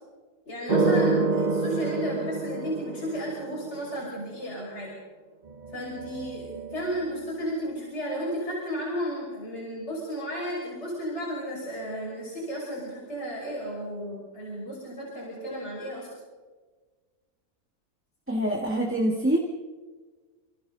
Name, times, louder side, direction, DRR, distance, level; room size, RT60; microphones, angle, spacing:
voice 1, 0.4-4.9 5.7-16.1, equal, 45° left, -5 dB, 6.3 m, -33 dB
sound 1, 0.7-3.8 5.5-7.2, right 3 dB, 35° right, 0.9 m, -27 dB
voice 2, 18.3-19.4, right 1 dB, 10° right, 0 dB, 1.8 m, -25 dB
28.0 x 28.0 x 4.0 m, 1.4 s
omnidirectional pair, 1.6 m